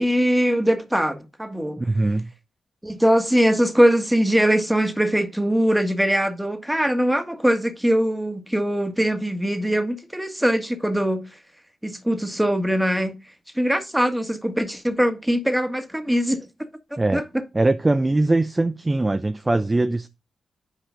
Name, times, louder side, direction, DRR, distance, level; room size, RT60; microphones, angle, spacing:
voice 1, 0.0-1.8 2.8-11.2 11.8-13.1 13.5-16.5 17.1-17.2, equal, 5° right, 1.6 m, -21 dB
voice 2, 1.8-2.3 17.0-17.2 17.5-20.1, right 2 dB, 25° right, 0.6 m, -21 dB
8.2 x 4.8 x 3.7 m
supercardioid pair, 50°, 0 cm